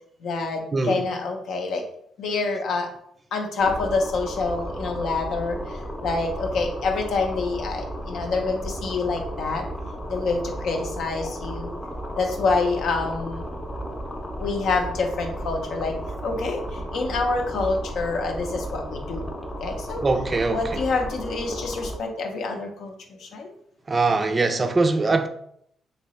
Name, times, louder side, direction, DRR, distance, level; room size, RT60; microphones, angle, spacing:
voice 1, 0.2-1.8 2.2-2.9 3.3-9.6 10.1-11.7 12.2-13.5 14.4-16.0 16.2-19.3 19.6-20.0 20.5-22.9 23.2-23.5, left 3 dB, 70° left, 0.6 m, -27 dB
voice 2, 0.7-1.1 20.0-20.8 23.9-25.3, right 3 dB, 30° right, 0.4 m, -22 dB
sound 1, 3.6-22.0, equal, 20° left, 0.6 m, -34 dB
3.3 x 2.8 x 3.0 m
cardioid pair, 90°, 0 cm